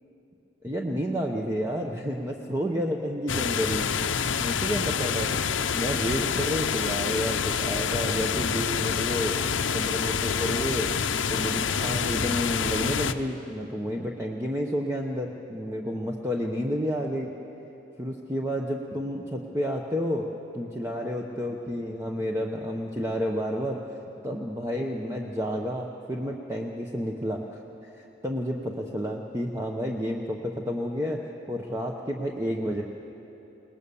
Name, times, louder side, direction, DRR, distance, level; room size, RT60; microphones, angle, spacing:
voice 1, 0.6-3.9 4.2-5.4 5.7-9.4 9.7-10.9 11.3-17.3 18.0-20.3 20.5-24.0 24.2-31.2 31.5-32.8, equal, 15° right, 0 dB, 0.9 m, -30 dB
sound 1, 3.3-13.1, left 6 dB, 70° left, 0.7 m, -27 dB
22.5 x 19.0 x 7.0 m, 3.0 s
head